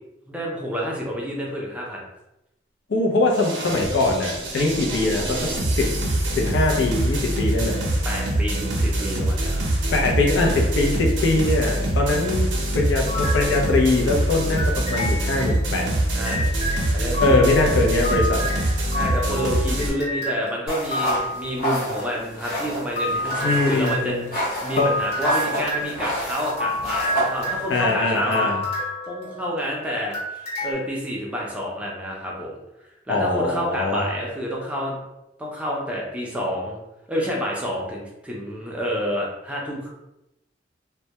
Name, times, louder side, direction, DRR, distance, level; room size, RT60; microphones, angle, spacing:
voice 1, 0.3-2.0 8.0-9.6 16.1-16.5 16.9-17.5 18.9-28.5 29.1-32.6 33.1-35.0 35.4-36.8 37.1-39.9, equal, 5° right, -3 dB, 0.5 m, -29 dB
voice 2, 2.9-5.9 6.3-7.8 9.9-15.9 17.2-18.5 23.4-24.3 24.7-24.9 25.8-25.9 27.7-28.6 33.1-34.0, left 2 dB, 85° left, 0 dB, 0.5 m, -22 dB
sound 1, 3.3-19.9, right 1 dB, 75° right, 0.6 m, -24 dB
sound 2, 13.0-14.1 14.6-21.5 22.5-29.7 30.1-30.7, left 1 dB, 35° left, 1.0 m, -30 dB
sound 3, 20.7-27.8, equal, 55° left, 0.8 m, -29 dB
2.2 x 2.1 x 2.8 m, 0.89 s
head